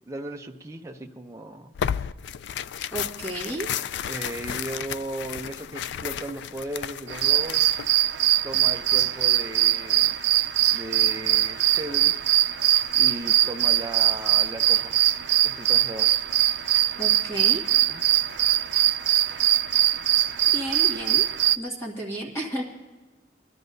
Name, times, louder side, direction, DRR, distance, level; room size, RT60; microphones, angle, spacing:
voice 1, 0.1-1.7 4.1-7.8 8.4-10.2 10.7-12.1 12.9-15.0 15.4-16.1 17.9-18.0, right 1 dB, 15° right, 2 dB, 0.6 m, -36 dB
Tearing, 1.7-7.9, left 9 dB, 75° left, 0.3 m, -33 dB
voice 2, 2.9-3.7 17.0-17.7 20.5-21.2 21.6-22.6, right 1 dB, 15° left, -5 dB, 1.9 m, -32 dB
sound 1, 7.1-21.6, right 12 dB, 75° right, 0.5 m, -22 dB
21.0 x 12.5 x 2.7 m, 1.2 s
head